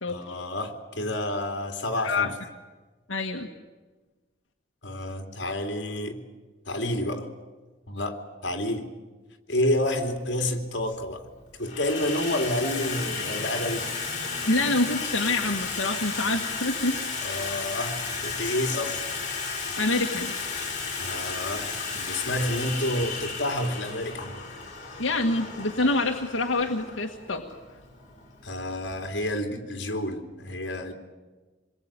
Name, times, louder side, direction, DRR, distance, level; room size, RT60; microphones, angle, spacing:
voice 1, 0.1-2.3 4.8-6.2 6.7-7.3 7.9-8.9 9.5-11.2 11.6-13.9 17.2-19.1 21.0-24.4 28.4-30.9, left 1 dB, 60° left, 5 dB, 3.1 m, -29 dB
voice 2, 3.1-3.5 14.5-17.0 19.8-20.3 25.0-27.4, left 2 dB, 85° left, 2 dB, 1.7 m, -26 dB
Water tap faucet / Sink (filling or washing), 9.7-9.8 10.8-11.2 11.5-29.1, left 4 dB, 40° left, 6.6 m, -34 dB
27.0 x 21.5 x 9.0 m, 1.3 s
head